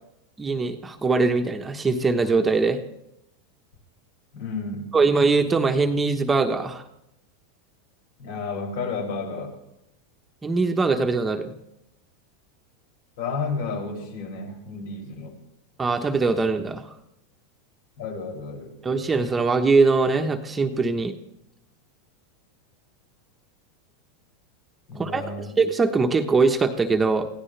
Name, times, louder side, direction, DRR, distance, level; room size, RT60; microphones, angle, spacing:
voice 1, 0.4-2.8 4.9-6.8 10.4-11.5 15.8-16.8 18.8-21.1 25.0-27.3, right 4 dB, 15° right, 6 dB, 1.2 m, -22 dB
voice 2, 4.3-4.9 8.2-9.6 13.2-15.4 18.0-18.7 24.9-25.6, left 4 dB, 70° left, 1 dB, 6.8 m, -32 dB
23.5 x 16.0 x 3.4 m, 0.85 s
supercardioid pair, 135°, 0 cm